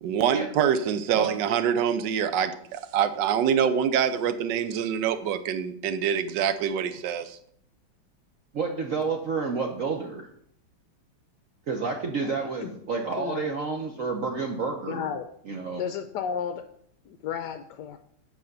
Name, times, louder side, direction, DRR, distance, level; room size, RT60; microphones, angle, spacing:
voice 1, 0.0-7.4, right 8 dB, 70° right, 12 dB, 1.3 m, -25 dB
voice 2, 8.5-10.3 11.7-15.1 15.5-15.8, right 4 dB, 55° right, 2 dB, 1.0 m, -29 dB
voice 3, 12.2-12.7 13.2-13.5 14.9-15.3 15.8-16.6 17.1-18.0, left 7 dB, 75° left, 8 dB, 1.1 m, -33 dB
8.2 x 5.0 x 6.6 m, 0.67 s
omnidirectional pair, 2.2 m